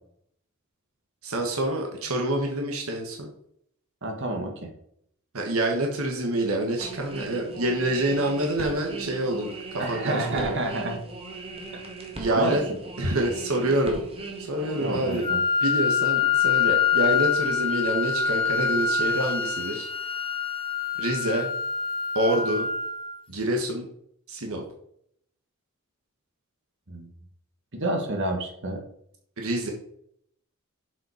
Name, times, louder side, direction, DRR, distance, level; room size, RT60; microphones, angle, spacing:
voice 1, 1.2-3.3 5.3-10.6 12.2-12.6 13.0-14.0 14.4-15.2 15.6-19.9 21.0-21.5 22.1-22.7 23.3-23.9 24.3-24.6 29.4-29.7, right 1 dB, 80° right, 1 dB, 1.4 m, -27 dB
voice 2, 4.0-4.7 9.8-11.0 11.7-11.8 12.3-12.6 14.8-15.4 26.9-27.1 27.7-28.8, right 1 dB, 60° right, 3 dB, 1.7 m, -29 dB
sound 1, 6.8-15.3, right 3 dB, 25° right, 1.6 m, -39 dB
Wind instrument woodwind instrument, 15.2-23.2, left 6 dB, 25° left, 0.9 m, -25 dB
7.4 x 5.4 x 5.0 m, 0.69 s
head